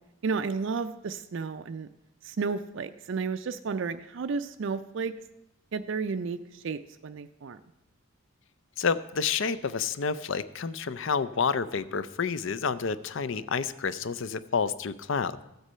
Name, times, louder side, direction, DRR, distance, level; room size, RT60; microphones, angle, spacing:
voice 1, 0.2-1.9 2.2-5.1 5.7-7.6, right 5 dB, 55° right, 9 dB, 0.4 m, -32 dB
voice 2, 8.8-15.4, left 5 dB, 60° left, 15 dB, 0.5 m, -29 dB
14.5 x 8.0 x 5.5 m, 0.90 s
head